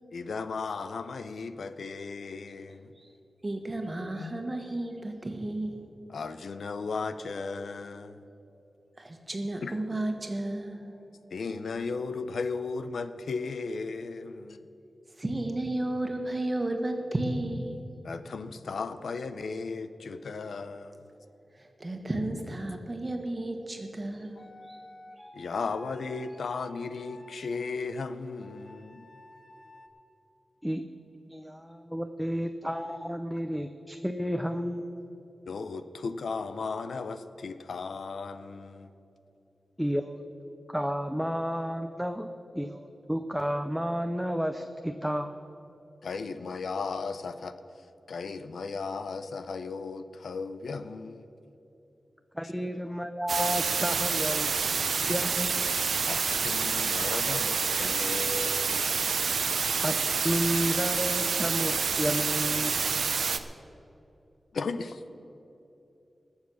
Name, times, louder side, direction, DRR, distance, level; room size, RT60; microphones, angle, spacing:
voice 1, 0.1-2.9 4.2-4.4 6.1-8.2 9.6-9.8 11.3-14.6 18.0-21.0 24.3-24.5 25.3-29.1 35.5-38.9 46.0-47.5 48.1-51.3 56.1-59.0 64.5-65.0, left 4 dB, 80° left, 11 dB, 0.6 m, -36 dB
voice 2, 3.4-5.8 9.0-11.0 15.2-17.8 21.5-24.8, right 1 dB, 25° right, 4 dB, 1.5 m, -33 dB
sound 1, 24.4-27.6 28.4-29.9, left 1 dB, 20° left, 1.7 m, -51 dB
voice 3, 31.3-35.0 39.8-40.2 40.7-42.3 42.5-45.4 52.3-54.5 55.1-55.6 59.8-62.8, equal, ahead, 7 dB, 0.5 m, -31 dB
sound 2, 53.3-63.4, right 5 dB, 80° right, 0.6 m, -28 dB
19.5 x 7.2 x 6.3 m, 2.9 s
wide cardioid pair, 115°, 0 cm